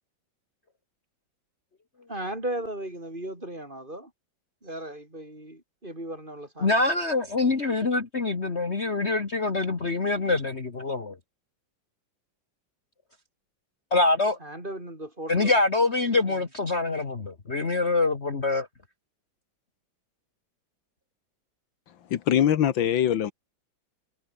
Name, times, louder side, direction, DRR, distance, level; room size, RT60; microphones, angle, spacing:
voice 1, 2.1-4.1 4.6-6.8 14.4-15.5 16.2-16.4, right 1 dB, 25° right, 6.5 m, -36 dB
voice 2, 6.6-11.2 13.9-14.4 15.3-18.7, left 3 dB, 35° left, 2.1 m, -25 dB
voice 3, 22.1-23.3, left 10 dB, 75° left, 1.9 m, -22 dB
omnidirectional pair, 2.1 m